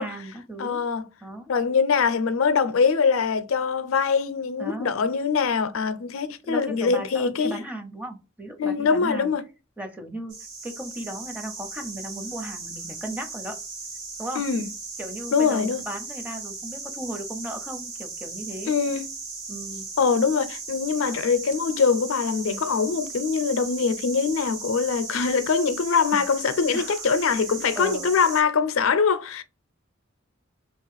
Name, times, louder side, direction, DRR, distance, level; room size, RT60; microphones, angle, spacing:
voice 1, 0.0-0.8 1.2-1.5 4.6-4.9 6.4-9.3 9.8-10.4 10.6-13.6 14.2-14.4 15.0-18.7 19.5-19.9 26.1-26.3 26.7-27.1 27.7-28.2, right 1 dB, 5° right, 0.6 m, -36 dB
voice 2, 0.6-1.0 1.5-7.6 8.6-9.4 14.4-14.7 15.3-15.8 18.7-19.1 20.0-29.4, left 5 dB, 90° left, 0.5 m, -23 dB
sound 1, 10.3-28.4, right 4 dB, 70° right, 1.6 m, -37 dB
2.8 x 2.4 x 4.0 m
head